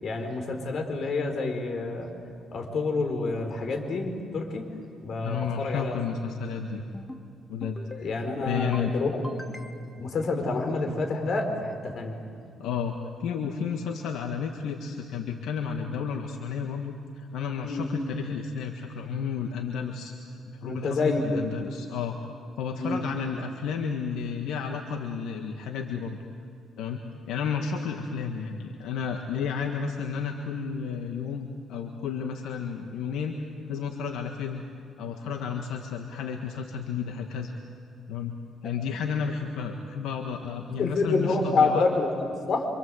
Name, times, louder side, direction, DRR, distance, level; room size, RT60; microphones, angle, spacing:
voice 1, 0.0-2.1 2.5-4.6 5.0-6.0 8.0-9.4 10.0-12.2 17.6-17.9 20.6-21.4 22.8-23.0 40.8-42.7, left 3 dB, 60° left, 4 dB, 4.8 m, -28 dB
voice 2, 5.2-6.8 7.5-8.1 8.4-8.9 12.6-20.1 20.5-22.2 22.6-26.2 26.8-27.0 27.3-33.3 33.7-34.6 35.0-37.5 38.1-38.3 38.6-41.9, left 6 dB, 85° left, 3 dB, 1.7 m, -32 dB
sound 1, 6.8-7.2 7.6-8.1 8.4-8.9 9.2-10.0, left 1 dB, 15° left, 2.2 m, -42 dB
27.5 x 26.5 x 7.9 m, 2.6 s
cardioid pair, 90°, 0 cm